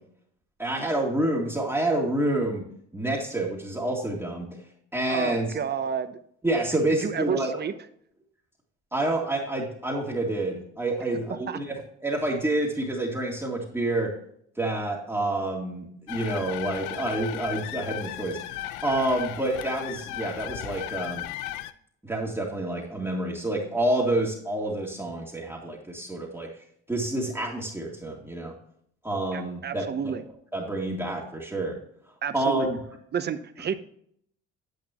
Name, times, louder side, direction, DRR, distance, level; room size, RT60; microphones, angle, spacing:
voice 1, 0.6-2.6 2.9-4.5 4.9-5.5 6.4-7.5 8.9-14.1 14.6-21.2 22.0-26.5 26.9-28.5 29.0-30.1 30.5-31.8 32.3-32.8, right 1 dB, 5° right, -3 dB, 2.2 m, -28 dB
voice 2, 5.1-6.2 7.0-7.7 11.5-11.6 29.3-30.2 32.2-32.7 33.1-33.8, right 7 dB, 35° right, 11 dB, 0.9 m, -30 dB
sound 1, 16.1-21.7, left 14 dB, 80° left, 0.6 m, -36 dB
9.3 x 8.5 x 3.0 m, 0.65 s
cardioid pair, 105°, 30 cm